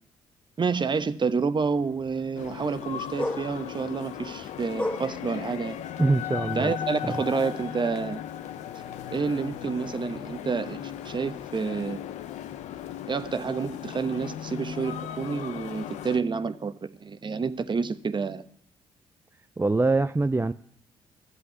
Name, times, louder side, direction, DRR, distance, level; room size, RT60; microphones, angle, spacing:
voice 1, 0.6-5.8 6.5-8.2 9.1-12.0 13.1-18.4, right 5 dB, 40° right, 1.1 m, -29 dB
Tai O Dog Bark Plane Boat W, 1.6-11.8, left 1 dB, 10° left, 3.2 m, -41 dB
sound 1, 2.3-16.2, left 10 dB, 70° left, 0.8 m, -37 dB
voice 2, 6.0-6.7 7.0-7.2 19.6-20.5, right 3 dB, 20° right, 0.5 m, -24 dB
11.5 x 7.7 x 9.3 m
hypercardioid pair, 45°, 13 cm